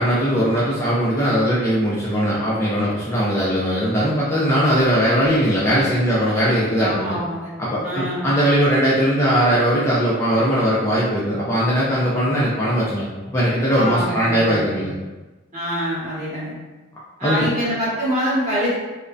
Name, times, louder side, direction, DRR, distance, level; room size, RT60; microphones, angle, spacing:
voice 1, 0.0-7.2 7.6-14.9 17.2-17.5, equal, 15° left, -8 dB, 0.4 m, -19 dB
voice 2, 6.8-7.5 7.8-8.3 13.7-14.7 15.5-16.6 17.2-18.8, equal, 35° right, -9 dB, 1.1 m, -25 dB
2.5 x 2.1 x 2.3 m, 1.2 s
head